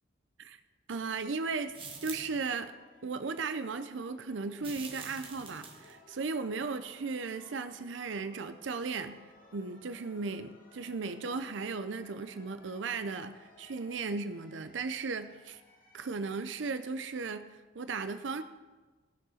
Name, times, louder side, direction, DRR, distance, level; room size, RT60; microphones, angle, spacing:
voice 1, 0.9-1.7 2.0-2.7 3.0-9.3 9.5-15.6 15.9-18.4, right 4 dB, 80° right, 10 dB, 0.6 m, -36 dB
sound 1, 1.0-17.0, left 1 dB, 45° left, 1.7 m, -61 dB
sound 2, 1.7-2.5 4.6-5.9, right 5 dB, 30° right, 1.6 m, -45 dB
Wind instrument woodwind instrument, 5.8-14.1, left 3 dB, 75° left, 1.0 m, -63 dB
18.0 x 6.2 x 4.2 m, 1.3 s
head